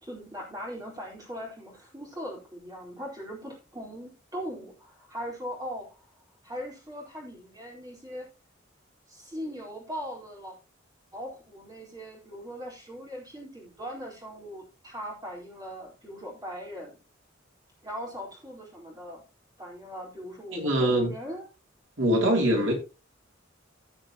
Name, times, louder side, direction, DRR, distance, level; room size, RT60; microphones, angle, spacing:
voice 1, 0.0-6.0 6.4-8.3 9.1-10.5 11.1-17.0 17.8-19.2 19.6-21.5, equal, 20° right, 4.0 m, -40 dB
voice 2, 20.5-21.1 22.0-22.7, right 1 dB, 70° right, 2.8 m, -23 dB
16.0 x 5.8 x 2.9 m
head